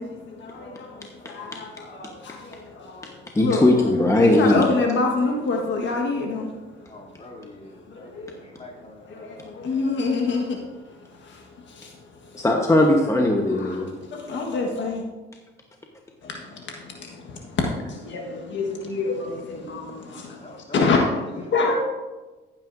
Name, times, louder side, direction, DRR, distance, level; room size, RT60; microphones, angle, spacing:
voice 1, 0.0-3.7 4.2-6.5 7.9-8.5 9.1-10.7 11.0-12.4 13.4-15.0 16.2-21.8, left 3 dB, 65° left, 1 dB, 1.5 m, -27 dB
voice 2, 0.6-1.9 6.8-10.2 20.2-21.1 21.4-21.8, left 2 dB, 35° left, -3 dB, 3.0 m, -46 dB
voice 3, 3.3-4.6 12.3-13.9, left 1 dB, 15° left, 1 dB, 1.2 m, -18 dB
14.5 x 9.0 x 2.7 m, 1.2 s
cardioid pair, 90°, 20 cm